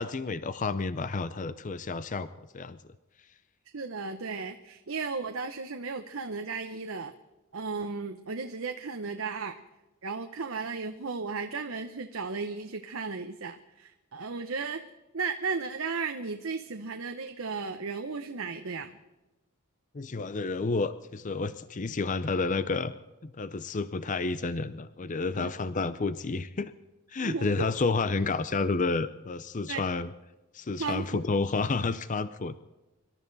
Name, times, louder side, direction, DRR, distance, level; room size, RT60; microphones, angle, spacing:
voice 1, 0.0-2.3 2.5-2.8 19.9-22.9 23.4-26.7 27.1-30.1 30.5-32.6, left 3 dB, 35° left, 14 dB, 0.5 m, -30 dB
voice 2, 3.7-7.1 7.5-9.5 10.0-14.8 15.1-18.9 25.4-25.5 27.2-27.7 29.7-29.8 30.8-31.2, right 4 dB, 65° right, 6 dB, 0.9 m, -35 dB
25.0 x 12.5 x 4.1 m, 1.1 s
head